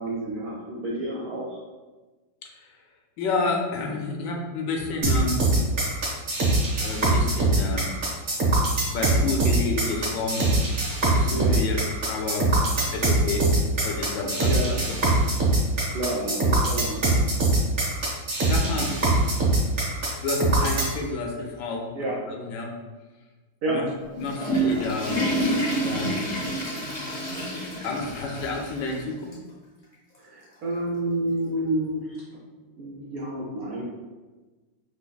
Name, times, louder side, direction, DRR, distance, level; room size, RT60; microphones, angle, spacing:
voice 1, 0.0-1.6 11.3-11.6 14.4-14.7 15.9-17.0 21.9-22.2 23.6-23.8 30.2-32.2 32.8-33.8, right 1 dB, 75° right, -4 dB, 0.8 m, -29 dB
voice 2, 3.2-5.9 6.8-7.9 8.9-10.8 11.1-11.8 12.1-12.5 12.9-13.5 13.8-15.0 18.5-19.0 20.2-21.9 22.3-22.8 23.7-23.8 24.2-25.2 25.7-26.3 27.8-29.3, left 3 dB, 75° left, 1 dB, 1.0 m, -30 dB
sound 1, 5.0-20.9, right 2 dB, 45° right, 1.0 m, -22 dB
Water / Toilet flush, 24.0-29.0 29.3-29.4 30.1-30.2 31.5-31.6, right 1 dB, 40° left, 0.6 m, -28 dB
4.9 x 2.6 x 2.2 m, 1.3 s
omnidirectional pair, 2.3 m